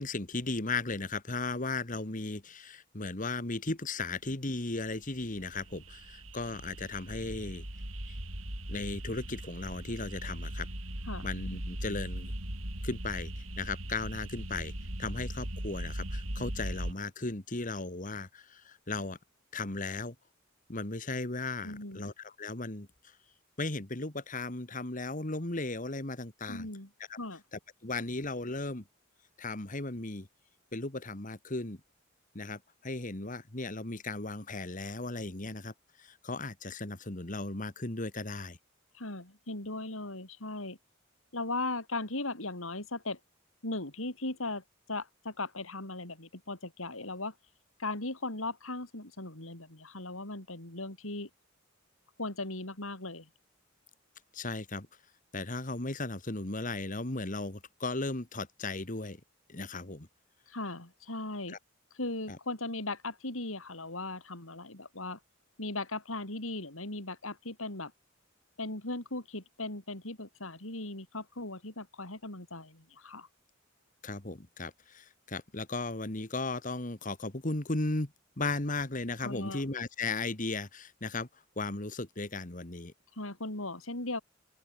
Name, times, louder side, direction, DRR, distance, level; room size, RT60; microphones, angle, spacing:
voice 1, 0.0-7.7 8.0-8.2 8.7-10.7 11.2-12.3 12.8-14.7 15.0-19.2 19.5-20.1 20.7-23.2 23.6-26.7 27.1-27.2 27.5-28.8 29.4-30.3 30.7-31.8 32.4-38.6 54.3-54.9 55.3-59.2 59.5-60.1 61.5-61.6 62.3-62.4 74.0-78.1 78.4-82.9, left 3 dB, 40° left, 1.9 m, -36 dB
sound 1, 4.9-16.9, right 1 dB, 80° right, 5.2 m, -39 dB
voice 2, 21.6-22.1 26.5-26.9 27.2-27.4 38.9-40.8 41.3-43.2 43.6-44.6 44.9-47.3 47.8-51.3 52.2-53.3 60.5-61.6 62.0-65.2 65.6-67.9 68.6-73.3 79.2-79.6 83.2-84.2, left 2 dB, 80° left, 5.1 m, -38 dB
open air
head